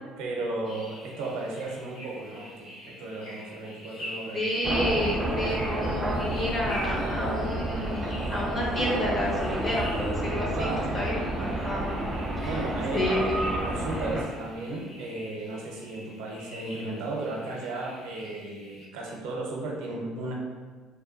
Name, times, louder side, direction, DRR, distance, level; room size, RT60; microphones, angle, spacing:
voice 1, 0.2-4.5 10.5-11.0 12.4-20.3, right 2 dB, 80° right, -1 dB, 0.6 m, -35 dB
sound 1, 0.6-18.9, equal, 85° left, 1.5 m, -45 dB
voice 2, 4.3-11.9 12.4-12.5 12.9-13.4, equal, 25° left, -4 dB, 0.8 m, -30 dB
sound 2, 4.6-14.2, right 1 dB, 15° right, 0.4 m, -30 dB
2.9 x 2.2 x 2.5 m, 1.4 s
cardioid pair, 115°, 0 cm